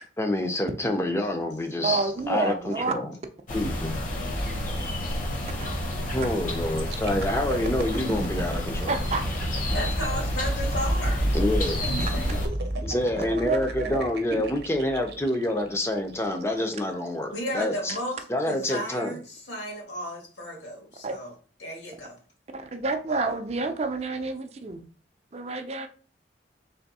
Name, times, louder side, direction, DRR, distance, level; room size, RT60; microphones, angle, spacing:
voice 1, 0.2-3.1 3.5-3.9 6.1-9.0 11.3-11.8 12.8-17.9 18.3-19.2, left 1 dB, 15° left, 4 dB, 0.5 m, -27 dB
voice 2, 1.8-2.9 8.9-9.2 13.3-14.0 14.3-14.5 21.0-21.2 22.5-24.9 25.3-25.9, right 3 dB, 35° right, 7 dB, 0.5 m, -29 dB
sound 1, 3.5-12.5, left 1 dB, 45° left, 0.9 m, -30 dB
sound 2, 6.8-16.6 17.1-17.2, right 1 dB, 65° right, 0.8 m, -32 dB
voice 3, 9.7-11.3 11.8-12.4 17.3-21.3 21.6-22.2, equal, 80° left, 0 dB, 1.7 m, -34 dB
3.5 x 3.2 x 4.1 m, 0.39 s
head